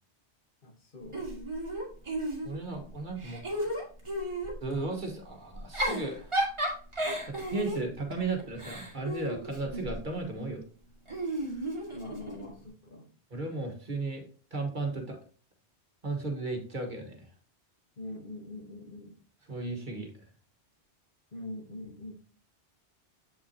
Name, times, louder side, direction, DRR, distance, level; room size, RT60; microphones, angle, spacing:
voice 1, 0.6-1.3 11.9-13.1 18.0-19.2 21.3-22.1, left 2 dB, 50° left, 1.4 m, -43 dB
Giggle / Chuckle chortle, 1.1-2.8 3.2-4.6 5.5-10.0 11.1-12.5, right 1 dB, 25° right, 1.9 m, -33 dB
voice 2, 2.4-3.7 4.6-6.4 7.3-10.6 11.4-11.7 13.3-15.2 16.0-17.3 19.5-20.3, right 3 dB, 45° right, 1.4 m, -35 dB
7.3 x 5.9 x 2.8 m
omnidirectional pair, 1.1 m